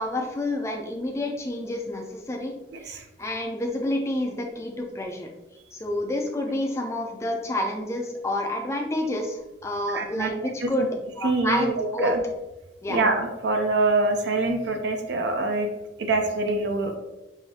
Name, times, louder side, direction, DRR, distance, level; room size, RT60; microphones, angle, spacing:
voice 1, 0.0-2.5 2.9-5.3 5.7-10.9 11.2-12.1 12.8-13.0, left 1 dB, 15° left, 1 dB, 0.4 m, -29 dB
voice 2, 9.9-10.3 10.6-10.9 11.2-12.2 12.9-15.7 16.0-17.0, right 2 dB, 60° right, 4 dB, 0.5 m, -25 dB
4.8 x 2.6 x 2.8 m, 1.0 s
head